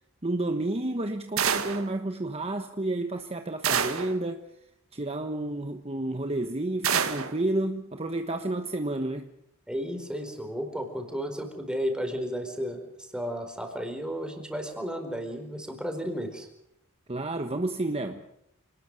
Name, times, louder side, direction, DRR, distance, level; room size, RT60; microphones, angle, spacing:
voice 1, 0.2-4.4 4.9-9.3 17.1-18.2, right 2 dB, 30° right, 6 dB, 1.2 m, -30 dB
sound 1, 1.4-1.9 3.6-4.2 6.8-7.4, right 7 dB, 70° right, 2.0 m, -27 dB
voice 2, 9.7-16.5, equal, 5° right, 5 dB, 4.5 m, -33 dB
27.5 x 19.5 x 6.6 m, 0.79 s
head